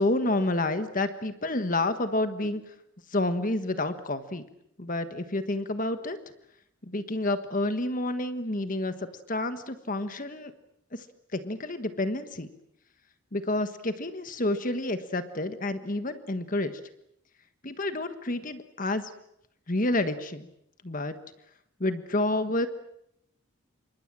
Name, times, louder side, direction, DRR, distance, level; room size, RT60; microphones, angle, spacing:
voice 1, 0.0-2.7 3.1-4.4 4.8-6.2 6.8-10.5 10.9-11.1 11.3-12.5 13.3-16.8 17.6-19.1 19.7-20.5 20.8-21.1 21.8-22.7, left 2 dB, 40° left, 10 dB, 1.4 m, -29 dB
28.5 x 25.0 x 7.5 m, 0.76 s
head